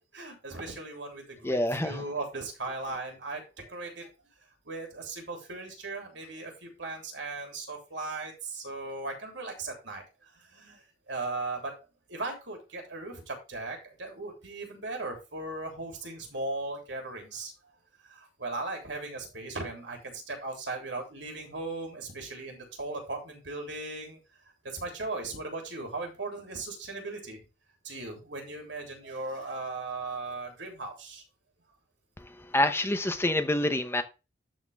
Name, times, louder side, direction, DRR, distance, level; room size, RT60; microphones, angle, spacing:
voice 1, 0.1-4.1 4.6-10.0 10.3-11.7 12.1-17.5 18.0-24.2 24.6-27.4 27.8-31.2, right 3 dB, 75° right, 2 dB, 3.3 m, -38 dB
voice 2, 1.4-2.0 32.5-34.0, left 1 dB, 15° left, 9 dB, 0.9 m, -26 dB
12.5 x 4.3 x 3.5 m, 0.28 s
head